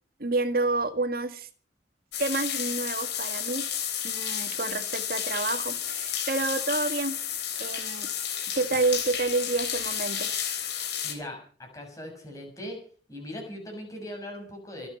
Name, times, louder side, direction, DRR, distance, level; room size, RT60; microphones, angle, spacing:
voice 1, 0.2-1.5 2.2-3.7 4.0-7.2 7.6-8.1 8.6-10.3, right 3 dB, 55° right, 8 dB, 1.9 m, -29 dB
sound 1, 2.1-11.1, left 9 dB, 70° left, 3.7 m, -32 dB
voice 2, 11.0-12.8 13.1-14.9, left 1 dB, 20° left, 1 dB, 6.4 m, -39 dB
26.5 x 9.2 x 5.5 m, 0.43 s
head